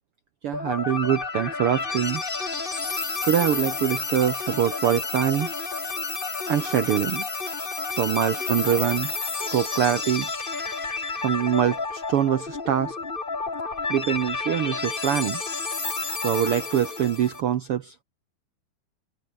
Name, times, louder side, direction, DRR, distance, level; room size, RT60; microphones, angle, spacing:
voice 1, 0.4-2.2 3.2-5.5 6.5-7.2 7.9-9.1 9.5-10.3 11.2-13.0 13.9-15.4 16.2-17.9, right 10 dB, 70° right, 1.4 m, -24 dB
sound 1, 0.5-17.4, left 4 dB, 30° left, 1.0 m, -30 dB
omnidirectional pair, 3.9 m